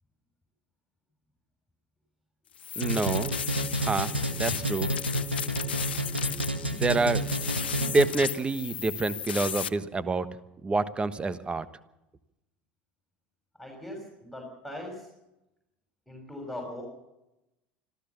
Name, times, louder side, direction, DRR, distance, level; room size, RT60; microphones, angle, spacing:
sound 1, 2.5-9.7, left 9 dB, 70° left, 0.7 m, -35 dB
voice 1, 2.8-3.4 3.8-4.9 6.7-7.2 7.8-10.3 10.6-11.7, right 3 dB, 20° right, 14 dB, 1.3 m, -27 dB
sound 2, 2.8-8.3, right 1 dB, 90° right, 1.6 m, -30 dB
voice 2, 13.6-15.1 16.1-16.8, left 1 dB, ahead, -1 dB, 6.1 m, -40 dB
26.0 x 14.5 x 7.1 m, 0.92 s
figure-of-eight pair, 70°, 6 cm